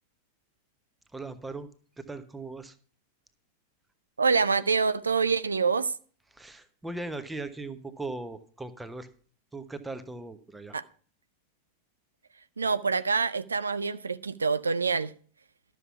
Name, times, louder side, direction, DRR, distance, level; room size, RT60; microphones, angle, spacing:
voice 1, 1.1-1.7 2.0-2.8 6.3-9.1 9.5-10.8, right 2 dB, 10° right, 1.1 m, -39 dB
voice 2, 4.2-5.9 10.7-10.8 12.6-15.1, right 5 dB, 75° right, 0.4 m, -26 dB
12.5 x 6.9 x 5.8 m
figure-of-eight pair, 90°, 0 cm